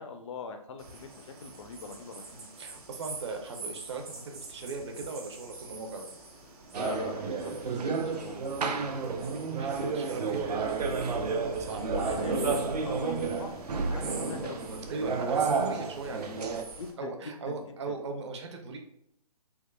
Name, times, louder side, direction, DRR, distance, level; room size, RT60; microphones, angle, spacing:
voice 1, 0.0-2.3 6.8-8.8 11.9-14.7 16.8-17.1 17.5-17.6 17.9-18.0, left 5 dB, 50° left, 6 dB, 0.4 m, -41 dB
sound 1, 0.8-16.9, right 3 dB, 65° right, 1.1 m, -44 dB
voice 2, 2.3-6.1 9.6-12.6 14.9-16.5 17.0-18.8, right 3 dB, 45° right, 4 dB, 0.6 m, -39 dB
sound 2, 6.7-16.6, right 5 dB, 90° right, 0.5 m, -31 dB
3.5 x 3.2 x 2.2 m, 0.73 s
hypercardioid pair, 160°, 20 cm